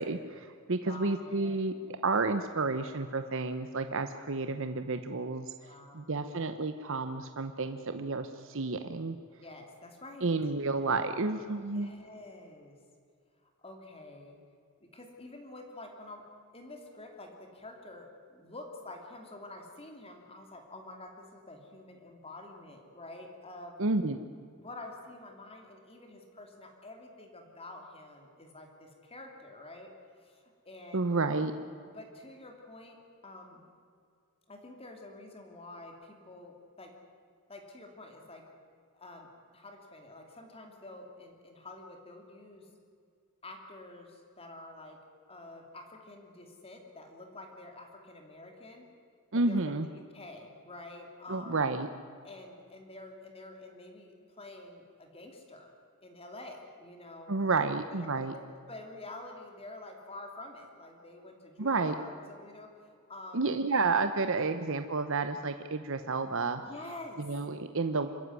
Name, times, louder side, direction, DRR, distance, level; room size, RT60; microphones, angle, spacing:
voice 1, 0.0-1.7 2.0-5.5 5.9-9.2 10.2-11.9 23.8-24.2 30.9-31.5 49.3-49.9 51.3-51.9 57.3-58.3 61.6-61.9 63.3-66.6 67.2-68.1, right 3 dB, 60° right, 9 dB, 0.9 m, -30 dB
voice 2, 0.8-1.5 3.1-3.3 5.6-6.1 9.4-10.3 11.5-12.8 13.6-14.4 14.8-16.2 16.5-23.8 24.5-29.9 30.2-31.3 31.9-33.0 33.2-33.6 34.5-36.9 37.5-38.4 38.9-42.7 43.4-45.0 45.3-48.9 49.3-51.7 52.2-55.7 56.0-62.7 63.1-63.5 64.3-64.6 66.6-67.2, left 2 dB, 25° left, 3 dB, 3.0 m, -48 dB
26.0 x 14.0 x 9.7 m, 2.3 s
head